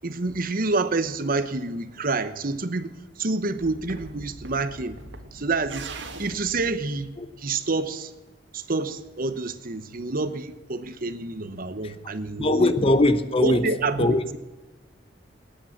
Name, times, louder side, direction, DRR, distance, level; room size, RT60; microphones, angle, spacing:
voice 1, 0.0-2.9 3.2-5.0 5.3-5.9 6.2-7.1 7.4-8.1 8.5-12.7 13.4-14.4, right 3 dB, 50° right, 1.0 m, -28 dB
sound 1, 3.6-7.8, right 2 dB, 75° right, 2.0 m, -42 dB
voice 2, 12.4-14.4, left 1 dB, 30° left, 0.9 m, -21 dB
19.5 x 9.1 x 7.5 m
head